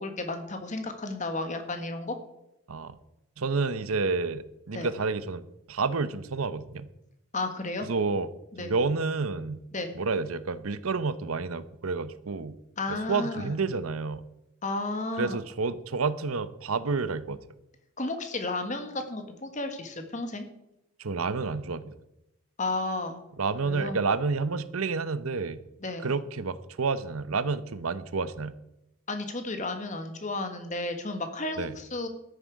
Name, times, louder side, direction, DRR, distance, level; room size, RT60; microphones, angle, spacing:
voice 1, 0.0-2.1 4.7-4.9 7.3-7.9 8.5-8.8 9.7-9.9 12.8-13.5 14.6-15.4 18.0-20.4 22.6-23.2 23.6-24.0 25.8-26.1 29.1-32.1, left 2 dB, 35° left, 7 dB, 1.6 m, -33 dB
voice 2, 3.4-6.9 7.9-8.3 8.6-9.6 9.9-12.6 12.9-14.2 15.2-17.4 21.0-21.9 23.4-25.6 26.0-28.5 31.6-31.7, right 4 dB, 90° right, 14 dB, 0.8 m, -29 dB
13.0 x 10.0 x 4.7 m, 0.88 s
head